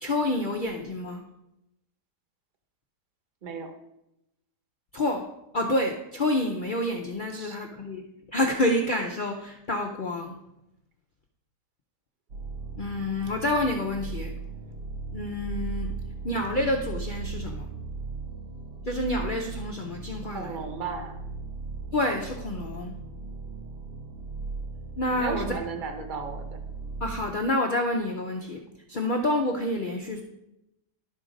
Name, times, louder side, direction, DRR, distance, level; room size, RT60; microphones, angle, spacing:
voice 1, 0.0-1.2 4.9-5.3 5.5-8.0 8.3-10.4 12.8-14.3 15.1-15.9 16.2-17.7 18.8-20.6 21.9-22.9 25.0-25.6 27.0-28.6 28.9-30.2, left 1 dB, 80° left, 2 dB, 0.4 m, -28 dB
voice 2, 3.4-3.7 7.3-7.6 20.2-21.2 25.1-26.6, right 5 dB, 40° right, 6 dB, 0.8 m, -35 dB
sound 1, 12.3-27.3, right 4 dB, 85° right, 1.6 m, -37 dB
11.5 x 3.9 x 5.0 m, 0.86 s
omnidirectional pair, 1.8 m